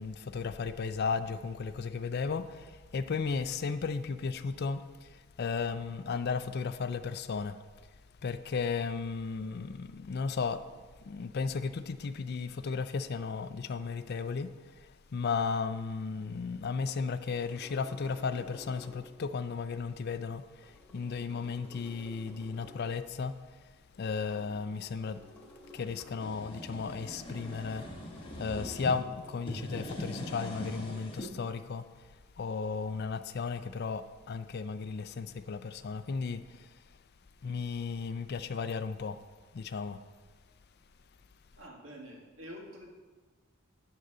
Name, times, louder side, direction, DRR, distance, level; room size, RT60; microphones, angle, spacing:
voice 1, 0.0-4.8 5.4-7.5 8.2-10.6 11.0-14.5 15.1-20.4 20.9-23.3 24.0-25.2 25.7-27.9 28.4-31.8 32.4-36.4 37.4-39.2 39.5-40.0, left 5 dB, 50° left, 0.4 m, -34 dB
sound 1, 17.3-19.2 20.6-22.9 24.3-26.3 27.4-29.8, left 1 dB, 5° left, 2.4 m, -54 dB
sound 2, 26.0-29.0 29.4-31.3, equal, 25° left, 1.3 m, -41 dB
voice 2, 41.6-42.9, equal, 70° right, 2.1 m, -47 dB
11.0 x 3.9 x 6.7 m
head